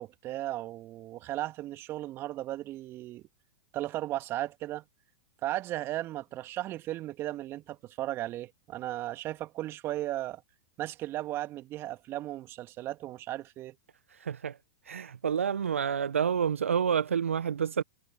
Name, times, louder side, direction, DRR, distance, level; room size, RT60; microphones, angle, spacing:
voice 1, 0.0-3.2 3.7-4.8 5.4-10.4 10.8-13.8, right 15 dB, 35° right, 2.9 m, -36 dB
voice 2, 14.1-14.6 14.9-17.8, right 7 dB, 80° right, 1.0 m, -29 dB
hypercardioid pair, 105°, 7 cm